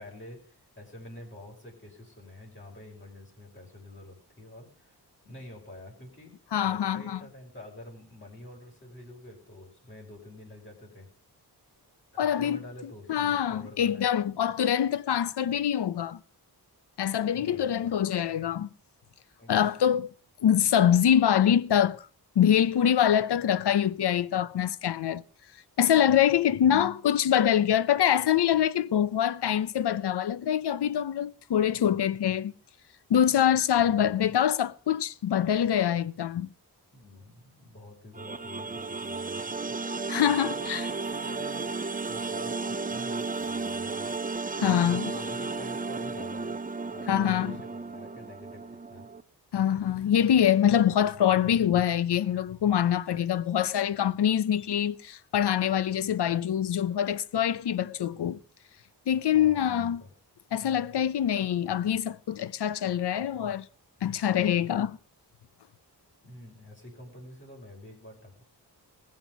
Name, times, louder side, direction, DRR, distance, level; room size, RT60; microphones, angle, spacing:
voice 1, 0.0-4.9 5.2-6.4 6.6-11.1 12.1-14.1 17.3-17.7 19.4-19.9 26.5-26.8 33.8-34.3 36.9-39.9 40.4-44.1 44.6-46.6 46.8-49.1 59.3-60.1 66.2-68.4, left 1 dB, 30° left, 5.4 m, -47 dB
voice 2, 6.5-7.2 12.2-12.6 13.1-16.2 17.0-18.7 19.5-20.1 20.4-22.1 22.4-25.2 25.8-32.5 33.1-36.5 40.1-40.8 44.6-45.1 47.1-47.6 49.5-58.4 59.1-60.0 60.5-63.7 64.0-65.0, left 9 dB, 75° left, 0.8 m, -24 dB
sound 1, 38.1-49.2, right 4 dB, 20° right, 0.6 m, -34 dB
20.0 x 7.5 x 7.2 m
wide cardioid pair, 175°, 40 cm